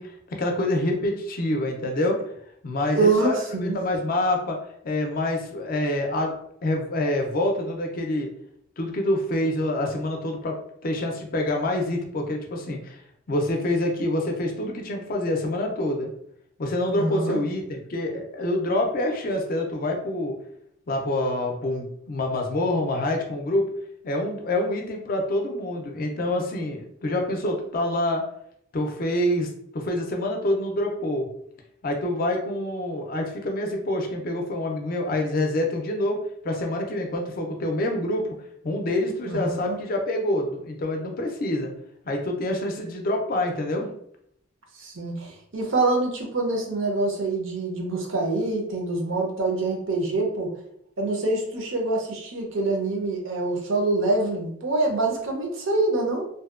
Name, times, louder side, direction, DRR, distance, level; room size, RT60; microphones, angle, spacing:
voice 1, 0.0-2.2 2.6-4.6 4.8-6.4 6.6-8.3 8.8-13.0 13.3-16.1 16.6-20.4 20.9-23.7 24.0-28.2 28.7-31.3 31.8-38.3 38.6-41.7 42.0-43.9, left 1 dB, 45° left, 2 dB, 0.4 m, -26 dB
voice 2, 2.9-3.8 16.9-17.4 39.3-39.8 44.7-50.5 51.0-56.3, right 2 dB, 65° right, 1 dB, 0.6 m, -25 dB
2.6 x 2.1 x 2.4 m, 0.71 s
head